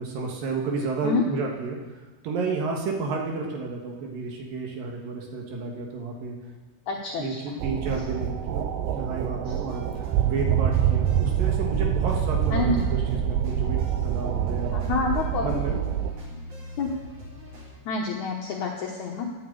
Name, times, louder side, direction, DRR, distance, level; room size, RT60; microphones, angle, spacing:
voice 1, 0.0-1.8 2.2-6.4 7.2-7.3 7.6-14.7 15.4-15.8, right 4 dB, 65° right, 1 dB, 3.0 m, -31 dB
voice 2, 6.9-7.6 9.5-9.6 12.5-12.9 14.3-14.4 14.7-15.6 16.8-16.9 17.9-19.3, left 4 dB, 70° left, 0 dB, 1.8 m, -28 dB
sound 1, 7.6-16.1, right 9 dB, 85° right, 2.7 m, -26 dB
sound 2, 9.7-17.7, equal, 40° right, 3.5 m, -43 dB
10.5 x 8.8 x 8.4 m, 1.3 s
omnidirectional pair, 4.7 m